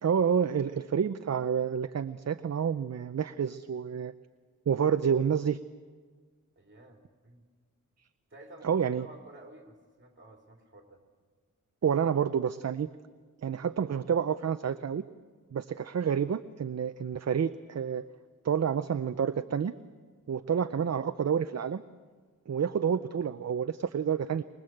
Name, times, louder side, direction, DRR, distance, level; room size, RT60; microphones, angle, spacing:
voice 1, 0.0-4.1 4.7-5.6 8.6-9.1 11.8-12.9 13.4-15.0 15.5-18.0 18.4-19.7 20.3-21.8 22.5-24.4, right 7 dB, 50° right, 11 dB, 0.6 m, -29 dB
voice 2, 6.6-7.4 8.3-11.0, right 2 dB, 35° right, 2 dB, 3.8 m, -52 dB
23.5 x 21.0 x 7.9 m, 1.5 s
wide cardioid pair, 95°, 33 cm